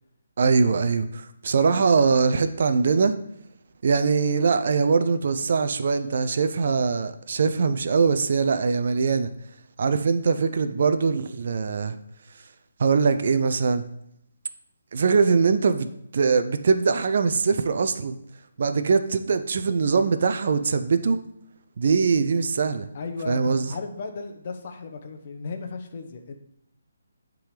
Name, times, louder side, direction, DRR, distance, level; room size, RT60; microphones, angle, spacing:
voice 1, 0.4-3.1 3.8-9.3 9.8-12.0 12.8-13.8 14.9-15.9 16.1-18.2 18.6-21.2 21.8-22.9 23.3-23.7, right 5 dB, 55° right, 9 dB, 0.6 m, -22 dB
voice 2, 22.9-26.4, left 4 dB, 45° left, 5 dB, 0.9 m, -35 dB
8.6 x 3.9 x 4.9 m, 0.77 s
hypercardioid pair, 155°, 0 cm